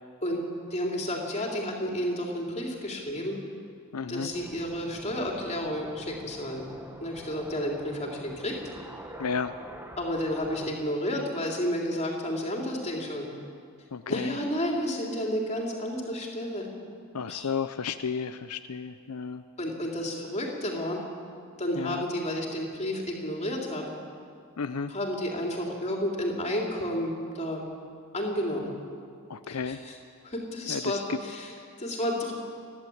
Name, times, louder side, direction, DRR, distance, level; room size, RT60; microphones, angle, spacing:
voice 1, 0.7-3.4 4.1-6.7 7.0-8.6 10.0-13.3 14.1-16.7 17.3-17.5 19.6-21.0 21.6-23.9 24.9-27.6 28.1-28.7 29.5-30.0 30.2-32.3, equal, 30° left, -1 dB, 3.5 m, -31 dB
voice 2, 3.9-4.3 9.2-9.5 13.9-14.4 17.1-19.4 21.8-22.0 24.6-24.9 29.3-29.8 30.7-31.2, left 5 dB, 85° left, 10 dB, 0.6 m, -32 dB
sound 1, 4.3-10.7, right 1 dB, 10° right, 1.3 m, -45 dB
30.0 x 11.5 x 8.7 m, 2.3 s
head